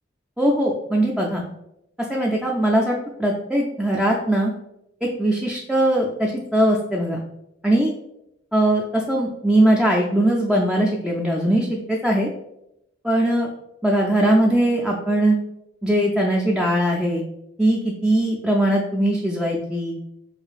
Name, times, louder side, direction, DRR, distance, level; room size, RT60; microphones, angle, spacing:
voice 1, 0.4-1.4 2.1-4.5 5.0-7.2 7.6-7.9 8.5-12.3 13.0-13.5 13.8-15.4 15.8-17.2 17.6-20.0, right 1 dB, 5° right, -2 dB, 0.3 m, -20 dB
4.9 x 2.6 x 2.3 m, 0.83 s
head